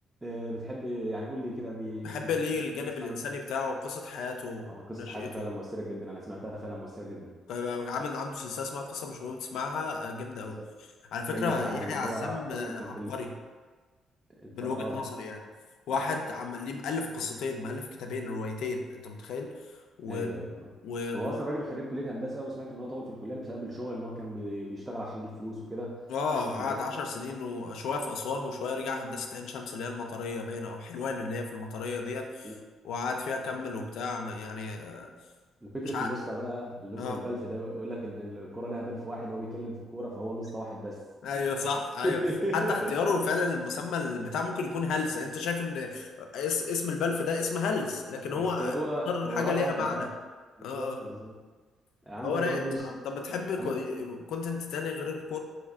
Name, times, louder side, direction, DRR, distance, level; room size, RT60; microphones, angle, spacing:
voice 1, 0.2-2.4 3.0-3.2 4.6-7.3 10.4-10.7 11.3-13.1 14.4-15.0 15.9-16.0 20.1-20.6 21.1-26.0 26.6-26.8 32.4-32.6 33.6-33.8 35.6-41.0 42.0-42.9 48.3-50.1 50.6-51.3 52.1-52.9 53.6-53.8, equal, 5° right, -5 dB, 0.3 m, -36 dB
voice 2, 2.0-5.5 7.5-10.6 11.1-13.3 14.5-15.4 15.9-19.5 20.0-20.5 20.8-21.4 26.1-32.5 32.8-35.1 35.9-36.1 37.0-37.2 41.2-42.2 42.5-48.7 49.1-50.1 50.6-51.0 52.2-52.6 53.0-55.4, left 4 dB, 70° left, 3 dB, 0.4 m, -32 dB
4.3 x 2.7 x 2.4 m, 1.4 s
cardioid pair, 180°, 0 cm